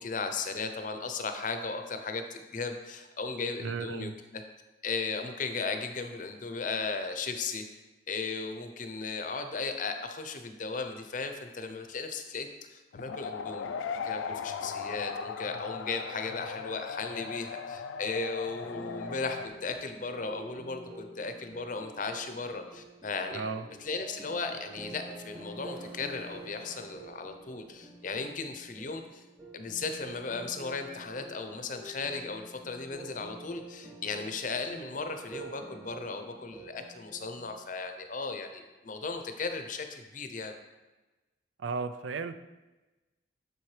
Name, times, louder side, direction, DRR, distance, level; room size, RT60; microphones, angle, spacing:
voice 1, 0.0-4.4 4.8-7.6 8.1-23.5 23.8-29.2 29.5-40.6, left 4 dB, 45° left, 6 dB, 0.6 m, -36 dB
voice 2, 3.6-4.2 23.3-23.6 41.6-42.4, right 4 dB, 85° right, 10 dB, 0.4 m, -34 dB
sound 1, 12.9-19.5, left 6 dB, 90° left, 0.3 m, -38 dB
sound 2, 18.6-37.6, right 2 dB, 10° right, 0.5 m, -48 dB
sound 3, 25.2-27.9, left 1 dB, 55° right, 2.0 m, -53 dB
7.4 x 6.8 x 3.2 m, 1.1 s
head